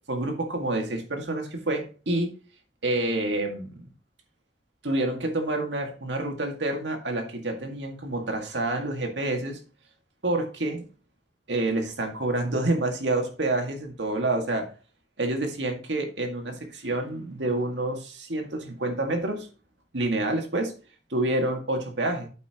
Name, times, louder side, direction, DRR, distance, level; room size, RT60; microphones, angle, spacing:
voice 1, 0.1-2.3 2.8-3.9 4.8-9.6 10.2-10.9 11.5-14.7 15.2-19.5 19.9-20.7 21.1-22.3, right 2 dB, 90° right, 2.0 m, -28 dB
8.6 x 8.4 x 3.0 m
head